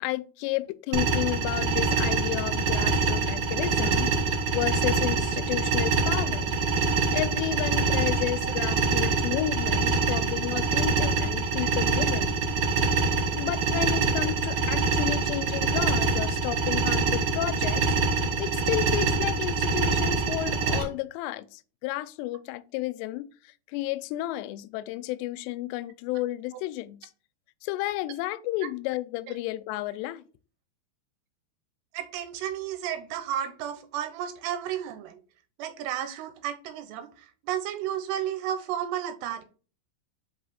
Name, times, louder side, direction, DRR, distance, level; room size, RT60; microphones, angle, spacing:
voice 1, 0.0-6.6 7.1-12.3 13.4-27.1 27.6-30.2, left 16 dB, 85° left, 2.6 m, -32 dB
sound 1, 0.9-20.8, right 4 dB, 65° right, 2.5 m, -25 dB
voice 2, 31.9-35.2 35.6-39.4, right 10 dB, 80° right, 2.7 m, -33 dB
5.5 x 5.5 x 4.1 m
omnidirectional pair, 5.2 m